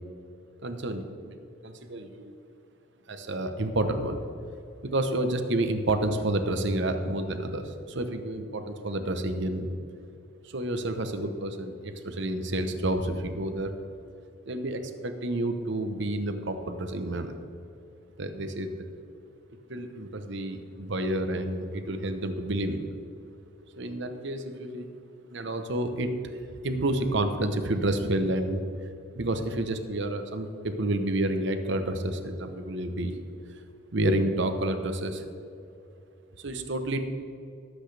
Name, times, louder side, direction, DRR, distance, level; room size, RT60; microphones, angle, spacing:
voice 1, 0.6-1.3 1.6-2.3 3.1-4.2 4.8-9.7 10.4-13.7 14.5-17.3 18.2-18.7 19.7-22.9 23.7-24.8 25.3-26.1 26.6-28.6 29.1-33.1 33.9-35.2 36.4-37.0, right 1 dB, 60° right, 7 dB, 0.9 m, -29 dB
18.5 x 8.1 x 3.4 m, 2.7 s
head